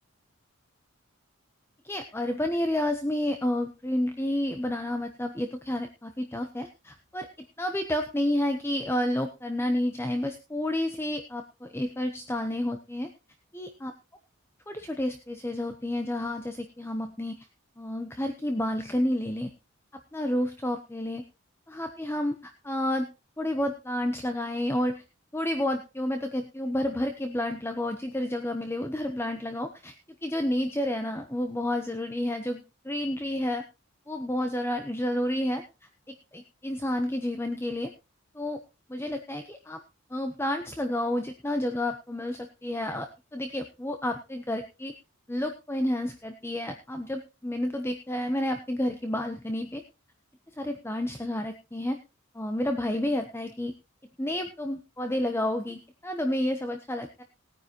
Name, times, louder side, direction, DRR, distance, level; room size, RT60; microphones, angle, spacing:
voice 1, 1.8-7.3 7.6-13.1 13.5-13.9 14.7-17.4 17.8-19.5 20.1-21.2 21.7-23.1 23.4-25.0 25.3-29.9 30.2-33.6 34.1-35.6 36.1-37.9 38.3-38.6 38.9-39.8 40.1-44.9 45.3-49.8 50.6-52.0 52.3-53.7 54.2-57.2, left 1 dB, 10° left, 5 dB, 0.9 m, -30 dB
19.5 x 9.6 x 3.0 m, 0.28 s
head